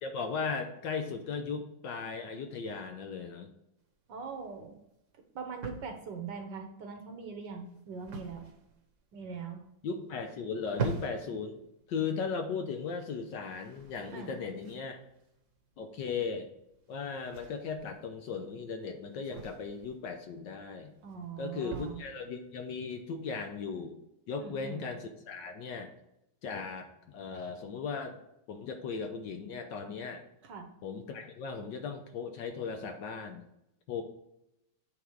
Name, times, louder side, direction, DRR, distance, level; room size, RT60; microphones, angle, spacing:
voice 1, 0.0-3.5 9.8-11.6 11.9-15.0 15.8-16.5 16.9-20.9 21.4-24.0 24.3-25.9 26.4-28.2 28.5-30.2 30.8-33.4 33.9-34.0, left 5 dB, 65° left, 5 dB, 1.3 m, -37 dB
sound 1, 3.8-23.5, right 4 dB, 45° right, 1.1 m, -45 dB
voice 2, 4.1-4.7 5.3-8.5 9.1-9.7 14.1-14.4 21.0-22.0 24.4-24.9 30.4-30.7, right 5 dB, 65° right, 4 dB, 1.4 m, -42 dB
8.2 x 3.8 x 4.6 m, 0.83 s
omnidirectional pair, 2.3 m